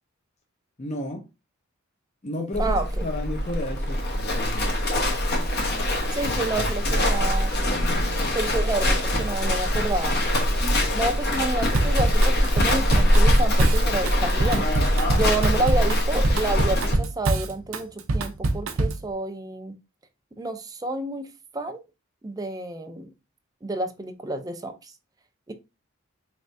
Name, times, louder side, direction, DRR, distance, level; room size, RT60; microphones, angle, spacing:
voice 1, 0.8-1.2 2.2-4.9 6.9-7.0 10.6-10.8, left 1 dB, 35° left, 0.6 m, -33 dB
Livestock farm animals working animals, 2.5-16.9, left 1 dB, 50° left, 1.0 m, -23 dB
voice 2, 2.6-3.0 6.1-7.8 8.3-10.2 10.9-14.8 15.1-19.7 20.4-21.3 21.5-21.8 22.2-23.1 23.6-24.9 25.5-25.6, right 2 dB, 20° right, 0.5 m, -29 dB
Drum kit / Drum, 11.7-19.1, right 2 dB, 80° right, 0.6 m, -25 dB
4.3 x 3.3 x 2.6 m
head